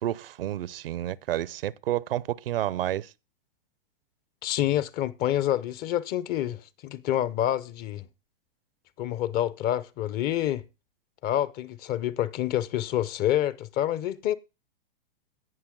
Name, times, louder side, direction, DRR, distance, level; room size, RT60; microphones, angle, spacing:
voice 1, 0.0-3.1, right 13 dB, 70° right, 0.7 m, -30 dB
voice 2, 4.4-8.0 9.0-10.6 11.2-14.3, left 12 dB, 30° left, 0.7 m, -27 dB
17.0 x 5.8 x 3.7 m
hypercardioid pair, 115°, 29 cm